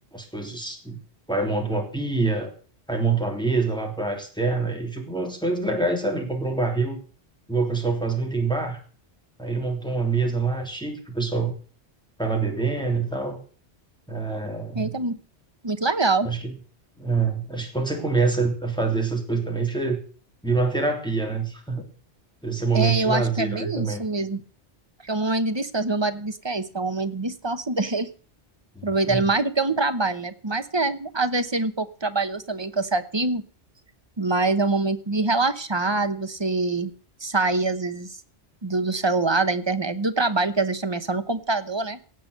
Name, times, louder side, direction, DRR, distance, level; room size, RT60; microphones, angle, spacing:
voice 1, 0.1-1.0 1.3-2.5 2.9-7.0 7.5-8.8 9.4-11.5 12.2-13.4 14.1-14.9 16.2-16.5 17.0-20.0 20.4-21.8 22.4-24.0 28.7-29.2, right 4 dB, 5° left, 2 dB, 3.1 m, -25 dB
voice 2, 14.7-15.2 15.6-16.3 22.7-24.4 25.0-28.1 28.8-33.4 34.2-36.9 37.2-38.1 38.6-42.0, right 3 dB, 25° right, 11 dB, 0.9 m, -24 dB
17.0 x 8.1 x 6.7 m, 0.42 s
omnidirectional pair, 1.2 m